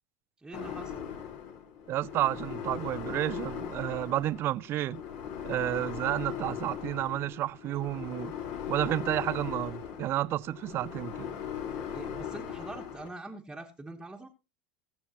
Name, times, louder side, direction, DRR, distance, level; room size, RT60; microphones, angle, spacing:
voice 1, 0.4-1.0 11.9-14.3, right 2 dB, 10° right, 1.3 m, -44 dB
sound 1, 0.5-13.1, left 8 dB, 55° left, 2.0 m, -39 dB
voice 2, 1.9-5.0 5.4-8.3 8.7-11.3, right 14 dB, 40° right, 0.5 m, -31 dB
21.0 x 7.1 x 2.9 m
supercardioid pair, 115°, 6 cm